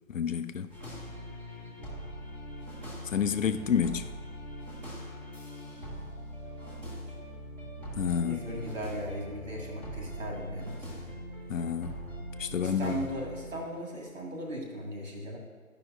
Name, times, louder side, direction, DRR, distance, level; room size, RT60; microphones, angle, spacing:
voice 1, 0.1-0.7 3.1-4.1 7.9-8.4 11.5-12.0 12.4-13.0, left 7 dB, 65° left, 10 dB, 0.5 m, -29 dB
sound 1, 0.7-13.6, equal, 10° right, 1.3 m, -42 dB
voice 2, 5.5-5.8 6.5-6.8 8.2-11.1 12.6-15.4, equal, 65° right, -1 dB, 1.9 m, -38 dB
12.0 x 5.5 x 2.3 m, 1.5 s
figure-of-eight pair, 140°, 43 cm